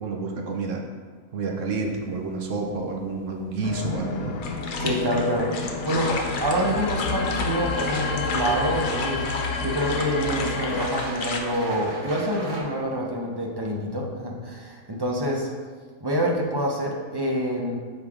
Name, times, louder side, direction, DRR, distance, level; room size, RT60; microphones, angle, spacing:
voice 1, 0.0-0.8 1.3-4.4, right 3 dB, 70° right, 2 dB, 0.9 m, -29 dB
sound 1, 1.6-12.6, equal, 45° right, 1.1 m, -42 dB
sound 2, 3.6-10.9, left 4 dB, 85° left, 1.1 m, -30 dB
sound 3, 4.4-11.4, left 3 dB, 55° left, 0.6 m, -34 dB
voice 2, 4.8-6.1 6.4-15.5 16.0-17.8, equal, 25° right, -1 dB, 0.6 m, -26 dB
6.4 x 4.8 x 3.6 m, 1.5 s
omnidirectional pair, 1.5 m